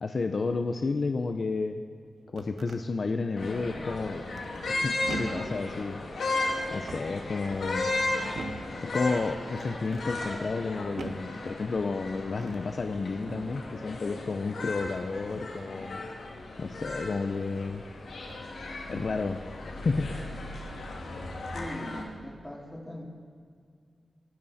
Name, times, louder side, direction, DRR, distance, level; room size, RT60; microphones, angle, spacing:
voice 1, 0.0-1.8 2.3-4.2 4.8-6.3 6.7-7.9 8.8-16.0 16.6-17.8 18.9-19.4 19.6-20.1, left 4 dB, 50° left, 6 dB, 0.8 m, -31 dB
sound 1, 2.1-2.8 4.3-4.7 5.1-5.6 6.7-7.3 8.3-8.8 9.6-10.1 11.0-11.4 12.3-12.7 13.2-13.6 14.8-15.1 17.2-17.3 18.2-18.5 18.9-19.3, right 3 dB, 75° right, 1.2 m, -42 dB
sound 2, 3.4-22.0, left 2 dB, 90° left, 2.5 m, -35 dB
voice 2, 21.5-23.0, equal, 10° left, 0 dB, 2.7 m, -40 dB
24.5 x 12.5 x 4.3 m, 2.1 s
wide cardioid pair, 120°, 0 cm